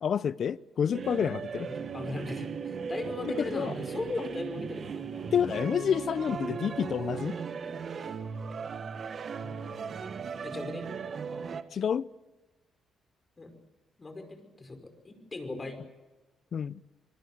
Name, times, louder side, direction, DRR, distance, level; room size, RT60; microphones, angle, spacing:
voice 1, 0.0-1.7 3.5-3.7 5.3-7.4 11.7-12.1 16.5-16.8, left 8 dB, 55° left, 0.7 m, -29 dB
sound 1, 0.9-11.6, right 6 dB, 50° right, 1.6 m, -37 dB
voice 2, 1.7-5.7 9.4-9.5 10.4-10.9 13.4-13.5 14.0-15.8, left 2 dB, 25° left, 5.3 m, -38 dB
26.5 x 20.0 x 8.0 m
cardioid pair, 90°, 0 cm